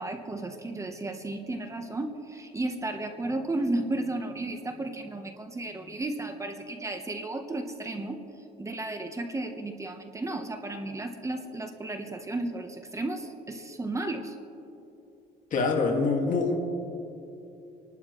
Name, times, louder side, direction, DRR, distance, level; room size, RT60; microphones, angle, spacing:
voice 1, 0.0-8.2 8.6-14.4, right 2 dB, 20° right, 5 dB, 1.1 m, -33 dB
voice 2, 15.5-16.5, left 4 dB, 50° left, 2 dB, 2.1 m, -25 dB
28.5 x 12.0 x 3.2 m, 2.8 s
cardioid pair, 110°, 17 cm